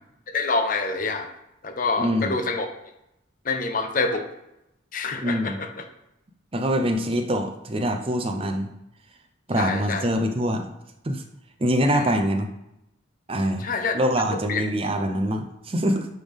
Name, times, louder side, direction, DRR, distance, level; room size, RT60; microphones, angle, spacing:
voice 1, 0.3-1.3 1.6-2.7 3.4-4.3 4.9-5.9 9.6-10.1 11.9-12.1 13.6-13.9 14.3-14.6, left 3 dB, 40° left, 6 dB, 0.7 m, -27 dB
voice 2, 2.0-2.4 5.2-5.6 6.5-8.7 9.5-10.7 11.0-11.2 11.6-12.5 13.3-13.7 13.9-16.1, equal, 30° right, 5 dB, 0.5 m, -24 dB
9.1 x 3.4 x 3.6 m, 0.87 s
head